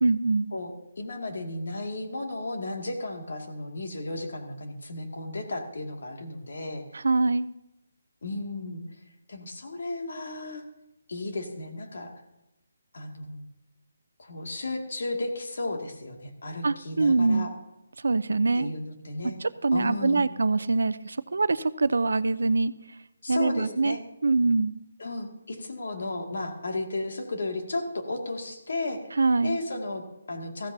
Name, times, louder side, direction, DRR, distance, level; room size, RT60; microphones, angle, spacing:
voice 1, 0.0-0.5 6.9-7.5 16.6-17.5 18.0-18.7 19.4-22.7 23.3-24.0 24.2-24.7 29.2-29.6, right 3 dB, 85° right, 16 dB, 0.6 m, -24 dB
voice 2, 0.5-6.8 8.2-8.8 9.3-10.6 11.1-12.1 12.9-13.5 14.2-17.5 18.5-19.4 19.7-20.3 23.2-24.0 25.0-29.0 29.4-30.7, left 2 dB, 65° left, 3 dB, 2.2 m, -34 dB
15.0 x 14.0 x 2.7 m, 0.93 s
hypercardioid pair, 170°, 0 cm